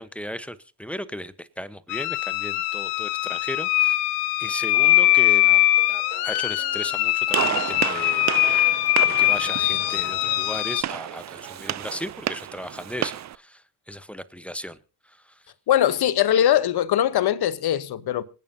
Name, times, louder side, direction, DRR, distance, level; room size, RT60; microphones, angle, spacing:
voice 1, 0.0-4.0 4.4-5.7 6.2-8.8 9.1-14.8 15.0-15.4, equal, 5° left, 1.0 m, -36 dB
sound 1, 1.9-10.8, left 17 dB, 85° left, 0.8 m, -22 dB
sound 2, 4.7-12.1, right 11 dB, 75° right, 1.5 m, -45 dB
Gunshot gunfire, 7.3-13.3, right 12 dB, 35° right, 0.6 m, -31 dB
voice 2, 15.7-18.2, left 11 dB, 50° left, 1.1 m, -21 dB
26.5 x 9.4 x 2.8 m
hypercardioid pair, 55°, 48 cm